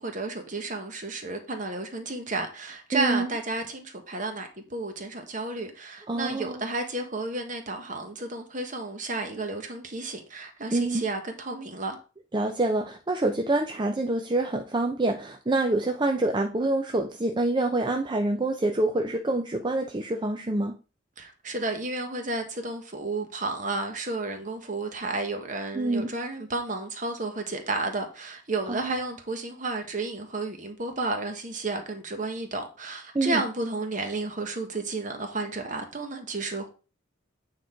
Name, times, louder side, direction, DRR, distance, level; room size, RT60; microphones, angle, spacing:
voice 1, 0.0-12.0 21.2-36.7, right 2 dB, 40° right, 1.3 m, -32 dB
voice 2, 2.9-3.3 6.1-6.6 10.7-11.0 12.3-20.8 25.7-26.1 28.7-29.0 33.1-33.4, right 2 dB, 25° right, 0.5 m, -26 dB
8.8 x 3.9 x 4.4 m
head